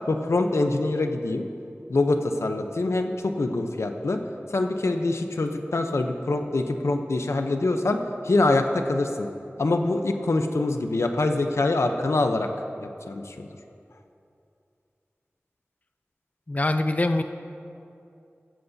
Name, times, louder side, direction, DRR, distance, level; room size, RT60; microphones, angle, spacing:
voice 1, 0.1-1.5 1.9-4.2 4.5-9.3 9.6-12.5 12.8-13.5, left 2 dB, 90° left, 5 dB, 0.7 m, -24 dB
voice 2, 16.5-17.2, left 2 dB, 35° left, 7 dB, 0.5 m, -23 dB
15.0 x 14.0 x 2.7 m, 2.6 s
wide cardioid pair, 60°, 5 cm